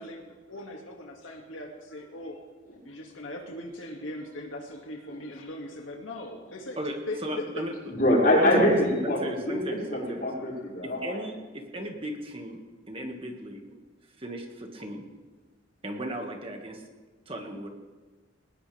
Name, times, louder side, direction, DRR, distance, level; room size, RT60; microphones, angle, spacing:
voice 1, 0.0-2.4 2.8-6.8 7.1-7.4, left 1 dB, 85° left, 1 dB, 2.2 m, -39 dB
voice 2, 6.8-7.7 8.4-8.7 9.0-10.3 10.8-12.6 12.9-13.6 14.2-15.0 15.8-16.8 17.3-17.7, right 1 dB, 30° right, 2 dB, 1.9 m, -36 dB
voice 3, 7.9-9.2 9.5-11.2, left 1 dB, 50° left, -4 dB, 5.8 m, -24 dB
20.5 x 19.0 x 3.5 m, 1.3 s
head